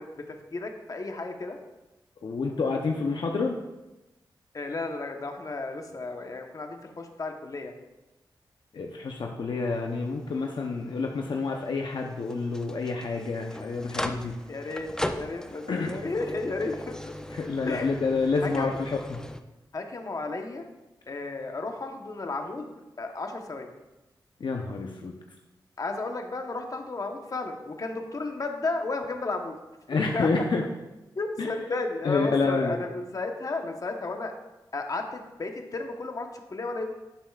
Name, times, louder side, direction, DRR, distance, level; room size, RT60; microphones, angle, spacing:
voice 1, 0.0-1.6 4.5-7.7 14.5-17.1 17.7-18.0 18.4-18.8 19.7-20.7 21.1-22.7 23.0-23.7 25.8-29.6 29.9-30.3 31.1-34.3 34.7-36.8, left 3 dB, 45° left, 4 dB, 1.1 m, -33 dB
voice 2, 2.2-3.5 8.7-14.3 15.7-16.0 17.3-19.2 24.4-25.1 29.9-30.6 31.4-31.5 32.0-32.7, left 4 dB, 70° left, 1 dB, 0.8 m, -28 dB
sound 1, 9.7-19.4, left 1 dB, 10° left, 0.6 m, -39 dB
11.0 x 7.5 x 2.4 m, 1.0 s
cardioid pair, 70°, 8 cm